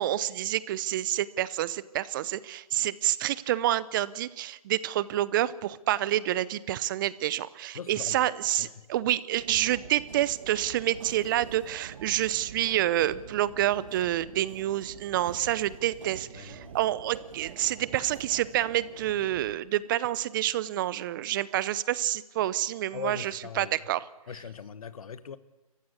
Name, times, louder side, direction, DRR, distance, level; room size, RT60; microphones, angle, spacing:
voice 1, 0.0-24.0, right 13 dB, 35° right, 0.9 m, -28 dB
voice 2, 7.7-8.3 8.6-8.8 16.3-16.8 22.9-23.8 24.3-25.4, left 7 dB, 70° left, 1.5 m, -40 dB
sound 1, 9.4-19.6, right 7 dB, 55° right, 1.8 m, -46 dB
29.0 x 15.0 x 8.5 m
hypercardioid pair, 145°, 19 cm